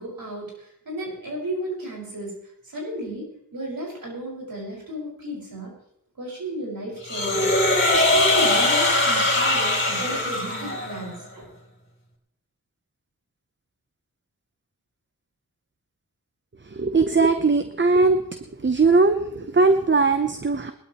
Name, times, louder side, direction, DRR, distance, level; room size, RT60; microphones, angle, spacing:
voice 1, 0.0-2.4 2.6-5.7 6.2-11.5, right 1 dB, 80° right, -3 dB, 5.8 m, -34 dB
sound 1, 7.1-11.1, left 2 dB, 35° left, 3.4 m, -21 dB
voice 2, 16.7-18.2 18.6-20.7, right 3 dB, 35° right, 8 dB, 0.8 m, -19 dB
20.5 x 12.5 x 3.1 m, 0.73 s
wide cardioid pair, 50°, 35 cm